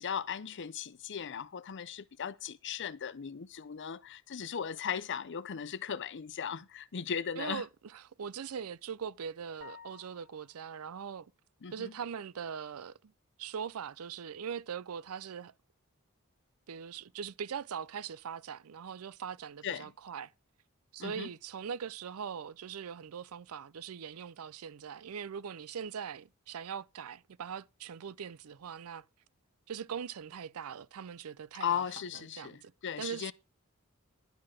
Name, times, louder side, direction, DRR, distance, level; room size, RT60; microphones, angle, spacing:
voice 1, 0.0-7.6 11.6-11.9 19.6-19.9 21.0-21.3 31.6-33.3, left 7 dB, 55° left, 0.6 m, -37 dB
voice 2, 7.4-11.3 11.7-13.1 13.4-15.5 16.7-20.3 20.9-29.0 29.7-31.9 32.1-32.7 33.0-33.3, right 7 dB, 75° right, 0.5 m, -41 dB
sound 1, 9.6-10.7, left 6 dB, 55° right, 2.6 m, -52 dB
11.5 x 4.8 x 7.4 m
head